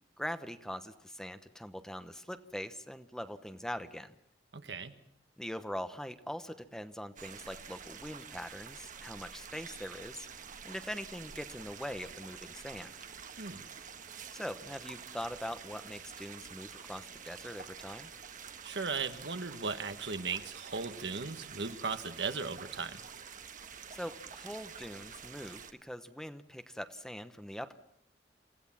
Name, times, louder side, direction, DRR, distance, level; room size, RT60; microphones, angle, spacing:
voice 1, 0.2-4.1 5.4-10.3 10.6-12.9 14.3-18.1 23.9-27.8, equal, 5° left, 10 dB, 1.0 m, -42 dB
voice 2, 4.5-4.9 13.4-13.6 18.6-23.0, right 4 dB, 75° right, 8 dB, 1.6 m, -37 dB
sound 1, 7.2-25.7, right 7 dB, 50° right, 1.4 m, -48 dB
28.0 x 16.5 x 7.4 m, 0.75 s
head